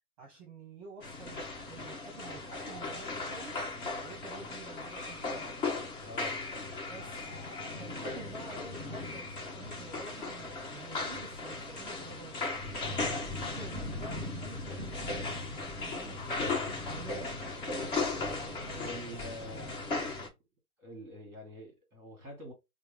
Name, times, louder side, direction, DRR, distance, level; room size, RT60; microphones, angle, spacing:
voice 1, 0.2-3.5 4.0-5.7 6.9-7.3 7.8-12.7 13.0-20.1, right 4 dB, 25° right, 0.9 m, -50 dB
sound 1, 1.0-20.3, left 3 dB, 35° left, 1.3 m, -37 dB
voice 2, 6.0-7.4 18.7-20.2 20.8-22.5, left 1 dB, 5° right, 1.6 m, -47 dB
4.4 x 2.1 x 3.3 m
hypercardioid pair, 145°, 45 cm